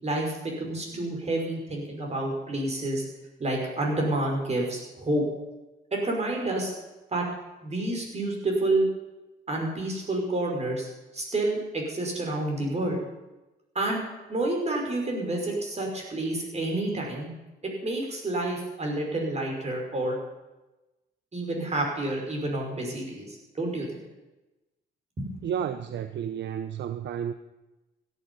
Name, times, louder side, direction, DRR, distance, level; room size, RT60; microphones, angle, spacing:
voice 1, 0.0-3.1 3.4-5.2 5.9-6.7 7.1-7.3 7.6-8.9 9.5-13.0 13.8-17.3 17.8-20.2 21.3-24.0 25.2-25.3, right 2 dB, 35° right, 5.5 m, -29 dB
voice 2, 25.4-27.3, right 8 dB, 60° right, 0.7 m, -31 dB
16.5 x 11.5 x 5.6 m
cardioid pair, 90°, 20 cm